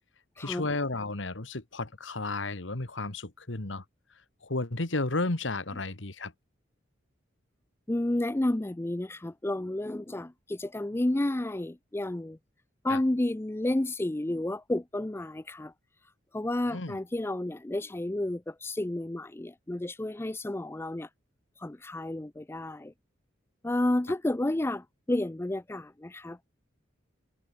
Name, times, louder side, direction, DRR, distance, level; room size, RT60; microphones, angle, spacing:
voice 1, 0.4-3.8 4.4-6.3 12.9-13.0 16.7-17.0, left 2 dB, 80° left, 1.9 m, -33 dB
voice 2, 7.9-12.4 12.8-15.7 16.3-21.1 21.6-22.9 23.6-26.4, left 1 dB, 15° left, 0.4 m, -31 dB
head